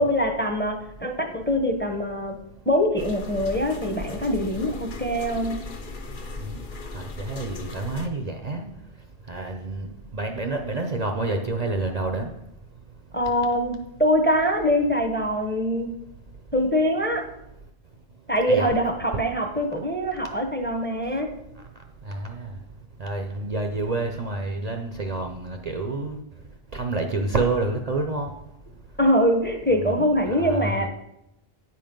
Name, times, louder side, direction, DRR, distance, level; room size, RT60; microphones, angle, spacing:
voice 1, 0.0-2.4 2.7-5.6 13.1-16.0 16.5-17.2 18.3-21.3 29.0-30.9, equal, 10° left, 4 dB, 0.9 m, -23 dB
sound 1, 3.0-8.1, left 3 dB, 55° left, 1.0 m, -37 dB
voice 2, 6.9-8.7 9.3-9.9 10.1-12.3 18.5-18.7 22.0-22.5 23.0-26.2 26.7-28.3 29.8-30.9, right 2 dB, 45° right, 4 dB, 0.7 m, -28 dB
9.5 x 5.4 x 5.2 m, 0.84 s
omnidirectional pair, 1.1 m